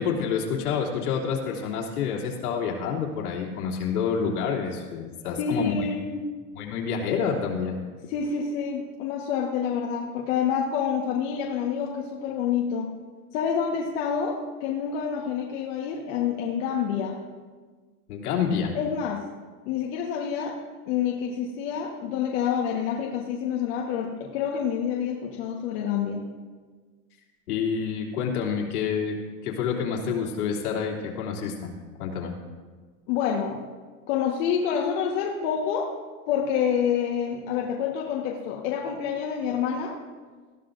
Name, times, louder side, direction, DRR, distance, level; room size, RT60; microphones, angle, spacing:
voice 1, 0.0-5.9 6.5-7.8 18.1-18.7 27.5-29.2 29.4-31.7 32.0-32.3, left 6 dB, 85° left, -2 dB, 3.0 m, -28 dB
voice 2, 5.4-6.2 8.1-12.9 13.3-17.2 18.7-19.2 19.6-20.5 20.9-26.2 33.1-33.6 34.1-35.9 36.3-40.0, left 7 dB, 65° left, -1 dB, 1.5 m, -27 dB
20.0 x 14.0 x 2.6 m, 1.5 s
supercardioid pair, 135°, 43 cm